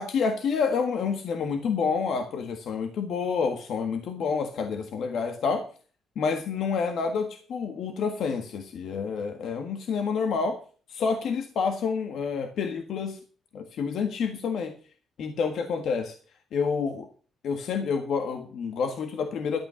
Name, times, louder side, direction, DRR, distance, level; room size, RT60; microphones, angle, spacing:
voice 1, 0.0-5.7 6.1-10.6 10.9-13.2 13.5-14.7 15.2-16.1 16.5-17.1 17.4-19.6, left 5 dB, 70° left, 6 dB, 1.6 m, -28 dB
12.5 x 8.5 x 6.3 m, 0.40 s
cardioid pair, 115°, 0 cm